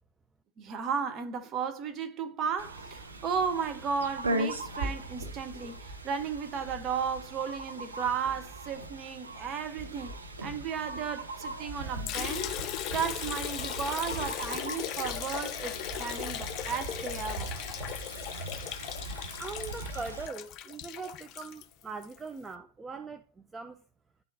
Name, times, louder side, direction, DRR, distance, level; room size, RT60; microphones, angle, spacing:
voice 1, 0.6-10.1 10.4-12.6 12.9-17.5, right 6 dB, 30° right, 0.8 m, -34 dB
sound 1, 2.6-20.3, right 2 dB, 75° right, 0.7 m, -39 dB
Liquid, 12.1-22.2, left 11 dB, 35° left, 0.5 m, -38 dB
voice 2, 19.4-23.8, right 4 dB, 15° right, 0.4 m, -41 dB
10.5 x 3.7 x 2.7 m
figure-of-eight pair, 90°, 0 cm